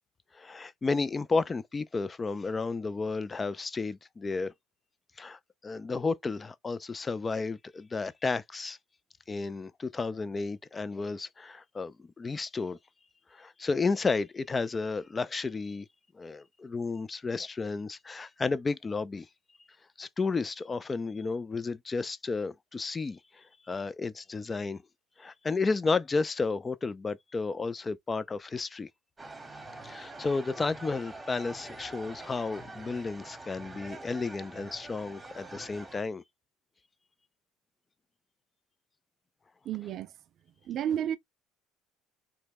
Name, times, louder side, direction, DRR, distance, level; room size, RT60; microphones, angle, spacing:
voice 1, 0.3-4.5 5.2-8.8 9.3-12.8 13.3-15.9 16.1-19.3 20.0-24.8 25.2-28.9 29.8-36.2, left 4 dB, 25° left, 0.3 m, -32 dB
sound 1, 29.2-36.0, right 2 dB, 15° right, 1.0 m, -45 dB
voice 2, 39.6-40.1 40.6-41.2, right 10 dB, 55° right, 0.3 m, -31 dB
3.1 x 2.1 x 3.4 m
supercardioid pair, 80°, 0 cm